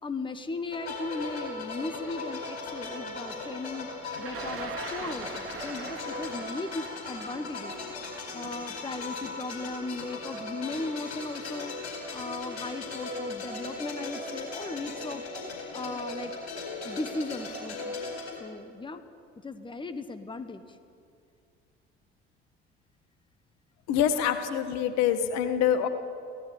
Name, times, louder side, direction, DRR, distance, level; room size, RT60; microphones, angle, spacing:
voice 1, 0.0-3.9 4.2-8.1 8.3-11.7 12.1-15.2 15.7-16.3 16.8-18.0 18.4-19.0 19.4-20.8, left 3 dB, 15° left, 11 dB, 1.3 m, -37 dB
sound 1, 0.7-18.3, left 3 dB, 75° left, 4.7 m, -38 dB
Thunder, 4.1-10.2 11.1-11.2 12.3-12.6 12.9-13.4, right 5 dB, 40° right, 3.0 m, -43 dB
voice 2, 23.9-25.9, left 9 dB, 55° left, 10 dB, 1.6 m, -25 dB
23.5 x 17.0 x 8.6 m, 2.4 s
figure-of-eight pair, 55°, 33 cm